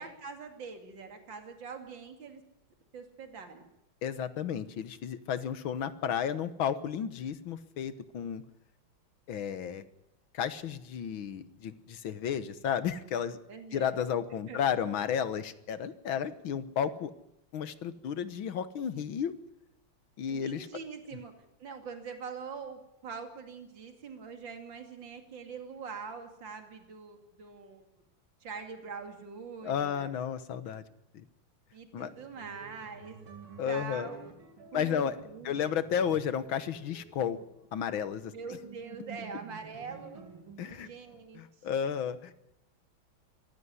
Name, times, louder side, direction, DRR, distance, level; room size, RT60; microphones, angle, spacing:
voice 1, 0.0-2.4 2.9-3.6 13.5-14.0 14.5-14.6 20.3-21.3 21.6-27.9 28.4-30.1 30.8-30.9 31.7-33.3 33.7-34.2 34.7-35.8 38.3-40.3 40.7-41.4, right 5 dB, 65° right, 5 dB, 3.2 m, -44 dB
voice 2, 4.0-8.4 9.3-9.8 10.3-13.4 13.7-17.1 17.5-19.3 20.2-20.7 29.6-30.8 31.1-31.3 31.9-32.1 33.6-34.1 34.7-35.2 35.5-37.4 37.7-38.3 40.6-40.9 41.4-42.3, left 8 dB, 75° left, 13 dB, 1.9 m, -32 dB
sound 1, 31.9-41.2, right 5 dB, 80° right, 3.5 m, -51 dB
23.0 x 15.5 x 9.6 m, 0.85 s
omnidirectional pair, 2.2 m